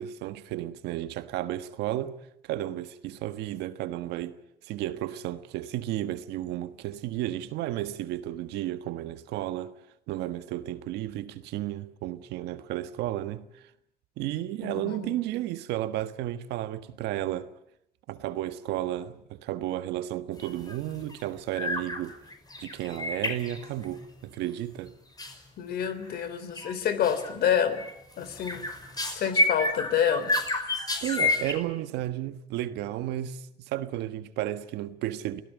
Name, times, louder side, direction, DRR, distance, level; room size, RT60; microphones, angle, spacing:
voice 1, 0.0-2.2 2.4-9.7 10.1-13.6 14.2-17.5 18.1-22.2 22.6-24.9 31.0-35.4, right 13 dB, 85° right, 1.4 m, -33 dB
voice 2, 14.6-15.2 25.6-27.8 28.2-28.7 29.1-30.3, left 8 dB, 65° left, 3.4 m, -28 dB
sound 1, 20.4-20.8 21.0-21.3 21.5-22.0 22.3-24.0 25.2-25.3 25.8-26.2 26.5-26.7 27.0-27.4 27.8-31.5, left 2 dB, 25° left, 5.8 m, -30 dB
27.0 x 17.5 x 9.3 m
cardioid pair, 110°, 17 cm